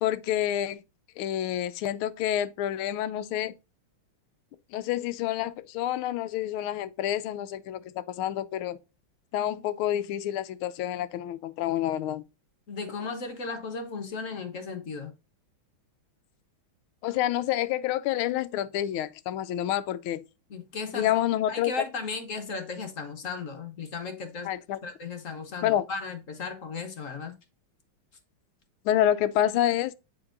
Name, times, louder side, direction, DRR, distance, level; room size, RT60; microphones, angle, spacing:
voice 1, 0.0-0.8 1.2-3.5 4.7-8.8 9.3-12.2 17.0-20.2 20.9-21.7 24.4-24.8 25.6-25.9 28.8-29.9, left 12 dB, 90° left, 1.5 m, -28 dB
voice 2, 12.7-15.1 20.5-21.1 21.5-24.5 24.8-27.3, left 4 dB, 50° left, 1.1 m, -35 dB
8.7 x 4.5 x 2.5 m
omnidirectional pair, 2.3 m